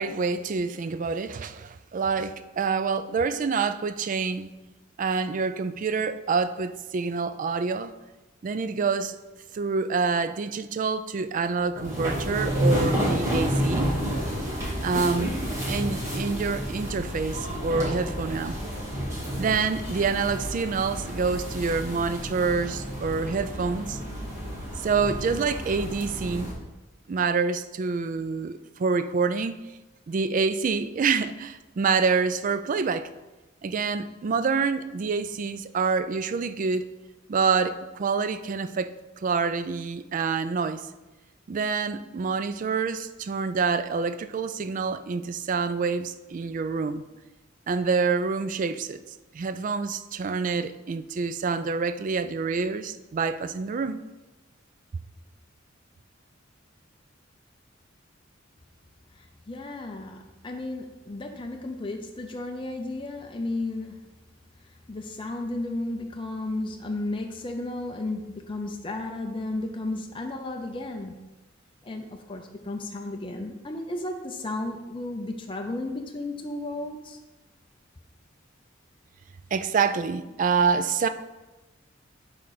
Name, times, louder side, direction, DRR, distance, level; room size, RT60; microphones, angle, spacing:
voice 1, 0.0-4.5 5.0-7.9 8.4-9.2 9.5-13.9 14.8-15.3 15.7-18.6 19.4-24.0 24.8-26.6 27.1-29.6 30.1-33.1 33.6-36.9 37.3-38.9 39.2-40.8 41.5-47.0 47.7-49.0 49.3-54.0 79.5-81.1, right 5 dB, 40° right, 0.3 m, -27 dB
sound 1, 11.7-26.5, equal, 15° right, 2.0 m, -30 dB
voice 2, 59.2-60.2 60.4-64.1 64.9-71.2 71.8-77.2, left 2 dB, 25° left, 0.5 m, -33 dB
11.0 x 3.8 x 4.0 m
head